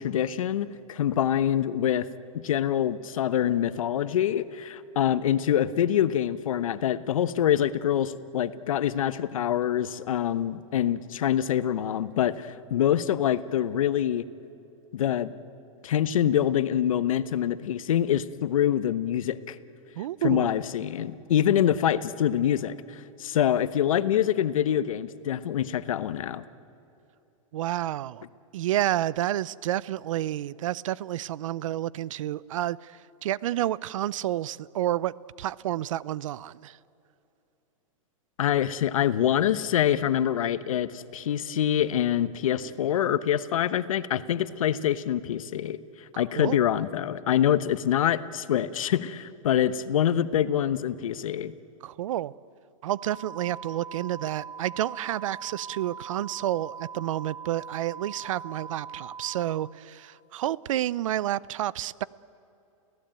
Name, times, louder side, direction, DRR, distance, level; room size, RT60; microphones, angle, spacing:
voice 1, 0.0-2.1 2.3-14.2 14.9-15.3 15.8-19.6 20.2-26.4 38.4-45.8 46.2-51.5, left 10 dB, 80° left, 14 dB, 1.0 m, -25 dB
voice 2, 20.0-20.5 27.5-28.2 28.5-35.1 35.4-36.8 46.1-46.6 51.8-52.3 52.8-62.0, right 13 dB, 75° right, 22 dB, 0.6 m, -30 dB
sound 1, 53.0-59.5, right 6 dB, 30° right, 5.0 m, -41 dB
29.0 x 16.5 x 9.0 m, 2.8 s
supercardioid pair, 145°, 17 cm